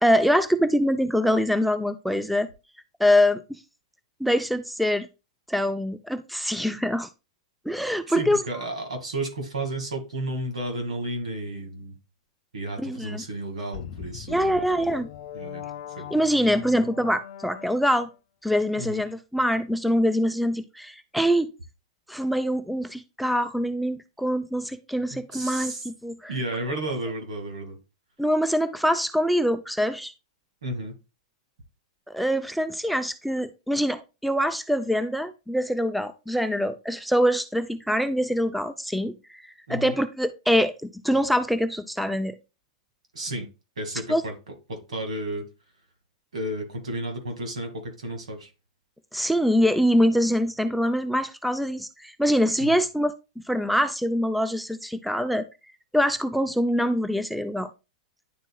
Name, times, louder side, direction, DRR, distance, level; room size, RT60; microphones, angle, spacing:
voice 1, 0.0-2.5 3.0-3.6 4.2-5.1 5.5-7.1 7.7-8.4 12.8-13.2 14.3-15.1 16.1-18.1 18.4-21.5 22.1-26.3 28.2-30.1 32.1-39.4 39.7-42.3 44.1-44.2 49.1-53.1 53.5-55.5 55.9-57.7, equal, ahead, 10 dB, 0.5 m, -24 dB
voice 2, 8.1-12.0 12.5-14.9 15.3-15.6 16.0-16.1 18.8-19.0 25.1-25.9 26.3-27.8 30.6-30.9 39.7-40.0 43.1-43.5 43.8-44.3 44.7-45.4 46.3-48.5 52.6-52.8, right 1 dB, 85° right, 4 dB, 2.1 m, -32 dB
sound 1, 13.7-18.2, left 10 dB, 55° left, 0.5 m, -41 dB
10.0 x 4.1 x 2.3 m, 0.28 s
hypercardioid pair, 125°, 3 cm